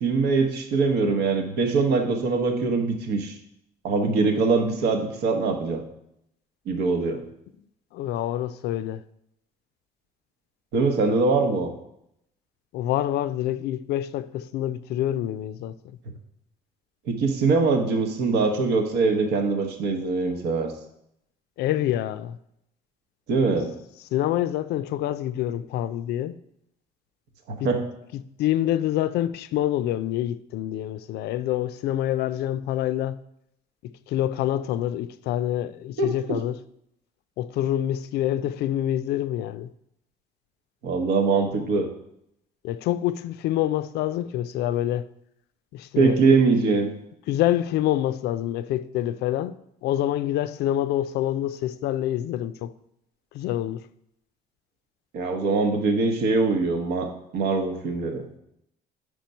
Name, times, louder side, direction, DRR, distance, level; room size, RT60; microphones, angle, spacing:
voice 1, 0.0-3.3 3.8-5.8 6.7-7.2 10.7-11.7 17.1-20.7 23.3-23.7 27.5-27.8 36.0-36.1 40.8-41.9 46.0-46.9 55.1-58.3, right 4 dB, 80° right, 1.0 m, -23 dB
voice 2, 7.9-9.0 12.7-15.7 21.6-22.4 24.1-26.4 27.6-27.7 28.1-33.2 33.8-36.6 37.4-39.7 42.6-45.1 45.7-46.8 47.3-49.5 49.8-52.7 53.3-53.8, left 12 dB, 75° left, 0.4 m, -26 dB
4.9 x 4.5 x 5.3 m
cardioid pair, 110°, 17 cm